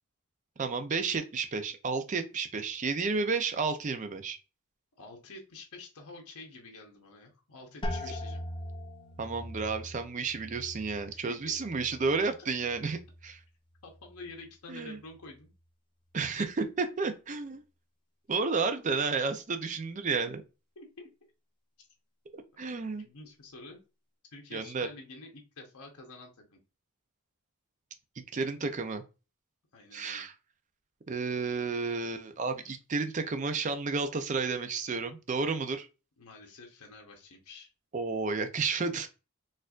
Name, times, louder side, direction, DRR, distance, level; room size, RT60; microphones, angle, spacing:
voice 1, 0.6-4.4 9.2-13.0 13.2-13.3 14.7-15.0 16.1-17.6 18.3-20.4 22.6-23.0 24.5-24.9 28.2-29.0 29.9-30.3 31.1-35.9 37.9-39.1, right 4 dB, 35° right, 7 dB, 0.4 m, -31 dB
voice 2, 5.0-8.4 11.1-11.5 13.8-15.5 20.8-21.1 21.8-21.9 22.6-23.8 24.3-26.6 29.7-30.3 32.6-32.8 36.2-37.7, left 3 dB, 80° left, 1 dB, 0.9 m, -49 dB
sound 1, 7.8-13.5 13.8-14.5 15.0-15.4, left 1 dB, 20° left, 0.5 m, -41 dB
4.3 x 2.5 x 2.4 m, 0.31 s
head